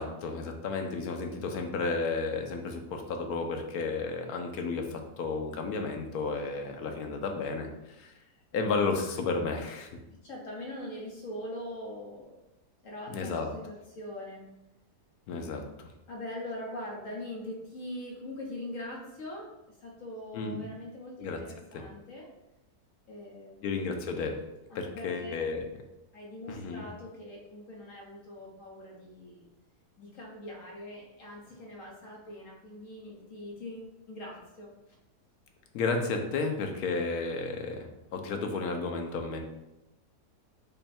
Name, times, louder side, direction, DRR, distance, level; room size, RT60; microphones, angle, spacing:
voice 1, 0.0-7.7 8.0-8.1 8.5-9.9 13.1-13.5 15.3-15.9 20.3-20.7 21.2-21.4 21.7-21.8 23.6-24.4 24.7-25.6 26.5-26.9 35.7-39.4, left 4 dB, 75° left, 4 dB, 1.1 m, -32 dB
voice 2, 10.2-12.3 12.8-14.4 16.1-19.5 19.8-22.3 23.1-23.6 24.7-25.4 26.1-29.5 30.0-34.7, left 1 dB, 55° left, -2 dB, 1.5 m, -42 dB
5.4 x 2.2 x 4.3 m, 0.94 s
omnidirectional pair, 1.7 m